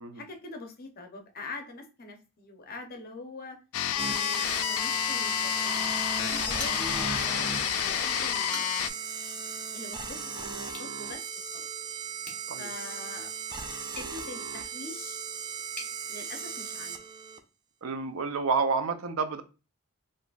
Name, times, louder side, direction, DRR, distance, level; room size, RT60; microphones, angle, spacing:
voice 1, 0.1-3.6 3.9-8.7 9.7-11.7 12.6-13.3 14.0-15.2 16.1-17.0, left 3 dB, 45° left, 5 dB, 0.6 m, -43 dB
sound 1, 3.7-8.9, left 11 dB, 90° left, 0.3 m, -29 dB
sound 2, 4.0-17.4, right 5 dB, 20° right, 0.3 m, -37 dB
sound 3, 8.5-9.0 10.7-10.9 12.2-16.0, left 2 dB, 5° left, 0.7 m, -46 dB
voice 2, 17.8-19.4, right 4 dB, 75° right, 8 dB, 0.5 m, -29 dB
3.8 x 2.5 x 2.3 m, 0.32 s
head